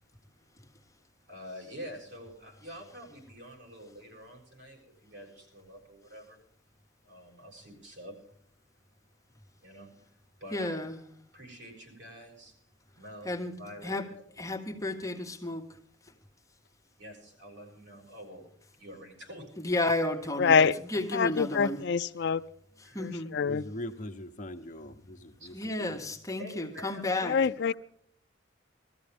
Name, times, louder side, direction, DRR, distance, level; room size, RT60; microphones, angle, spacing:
voice 1, 1.2-6.4 7.0-8.2 9.6-10.9 11.3-12.5 12.9-14.5 17.0-19.5 22.8-23.2 25.4-25.5 26.4-27.7, equal, 65° right, 6.9 m, -47 dB
voice 2, 10.5-11.0 13.2-13.5 13.8-14.0 14.4-15.7 19.6-21.8 22.9-23.3 25.5-27.4, left 2 dB, 20° left, 1.5 m, -32 dB
voice 3, 20.4-20.8 21.1-22.4 23.0-23.7 27.2-27.7, left 6 dB, 60° left, 0.5 m, -25 dB
voice 4, 23.3-26.0, left 1 dB, 40° left, 1.0 m, -42 dB
21.0 x 14.0 x 3.5 m
head